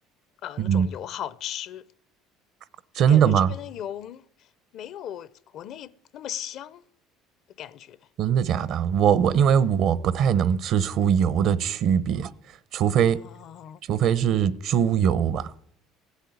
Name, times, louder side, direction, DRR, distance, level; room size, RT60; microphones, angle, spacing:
voice 1, 0.4-1.9 2.9-4.5 4.7-6.9 7.6-8.0 13.1-13.8, left 10 dB, 55° left, 0.6 m, -37 dB
voice 2, 2.9-3.5 8.2-12.3 12.7-13.2 13.9-15.5, right 8 dB, 55° right, 0.7 m, -21 dB
16.0 x 8.3 x 9.6 m
cardioid pair, 120°, 0 cm